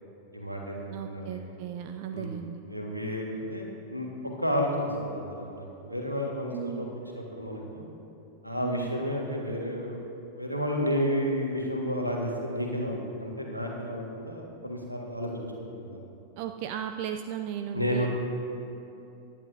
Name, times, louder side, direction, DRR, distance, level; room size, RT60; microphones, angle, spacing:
voice 1, 0.3-1.5 2.1-2.3 2.7-4.1 4.4-6.9 7.1-7.8 8.4-10.0 10.3-15.5 15.8-15.9 17.7-18.1, equal, 90° right, 0 dB, 1.6 m, -31 dB
voice 2, 0.9-2.6 6.5-6.9 8.6-9.0 16.4-18.1, right 9 dB, 45° right, 7 dB, 0.4 m, -36 dB
17.5 x 11.0 x 2.7 m, 2.8 s
figure-of-eight pair, 90°, 0 cm